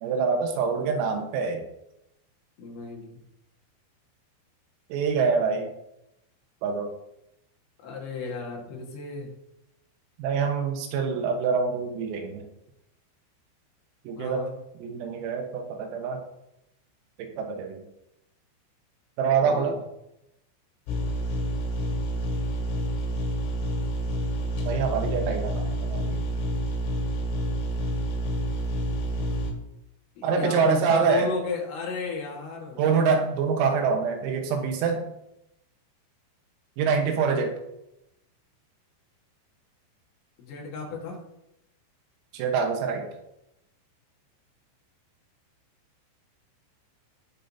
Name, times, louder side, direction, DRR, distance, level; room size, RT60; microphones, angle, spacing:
voice 1, 0.0-1.6 4.9-5.7 6.6-6.9 10.2-12.4 14.1-14.4 14.8-16.2 17.2-17.8 19.2-19.8 24.7-26.3 30.2-31.3 32.8-35.1 36.8-37.6 42.3-43.1, right 5 dB, 90° right, 3 dB, 4.0 m, -25 dB
voice 2, 2.6-3.2 7.8-9.3 14.2-14.6 19.4-19.8 30.2-32.8 40.4-41.2, left 4 dB, 65° left, -1 dB, 3.7 m, -34 dB
sound 1, 20.9-29.5, equal, 90° left, 4.6 m, -28 dB
18.5 x 6.8 x 2.8 m, 0.85 s
omnidirectional pair, 5.8 m